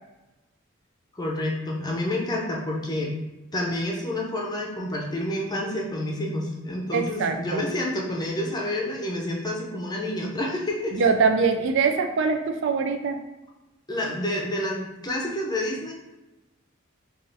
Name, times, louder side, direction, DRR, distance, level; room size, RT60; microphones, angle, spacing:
voice 1, 1.2-3.1 3.5-11.0 13.9-15.9, left 1 dB, 20° left, -1 dB, 0.6 m, -29 dB
voice 2, 6.9-7.6 10.9-13.2, right 5 dB, 65° right, 5 dB, 0.4 m, -23 dB
3.3 x 2.5 x 3.9 m, 1.0 s
head